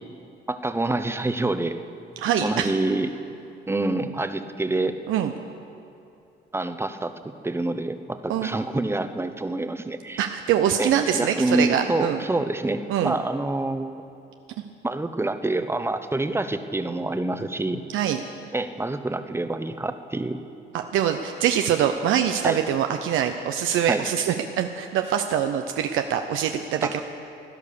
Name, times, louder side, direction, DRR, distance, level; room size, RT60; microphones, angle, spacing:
voice 1, 0.5-1.8 2.4-3.1 3.7-5.0 6.5-10.2 10.8-13.9 14.8-17.8 18.5-20.4 22.4-22.6 23.9-24.0 26.8-26.9, right 2 dB, 10° right, 9 dB, 0.9 m, -27 dB
voice 2, 2.2-2.7 5.1-5.3 8.3-8.5 10.2-12.2 12.9-13.1 17.9-18.2 20.7-27.0, right 9 dB, 85° right, 6 dB, 0.7 m, -24 dB
16.5 x 10.5 x 6.8 m, 2.6 s
cardioid pair, 90°, 20 cm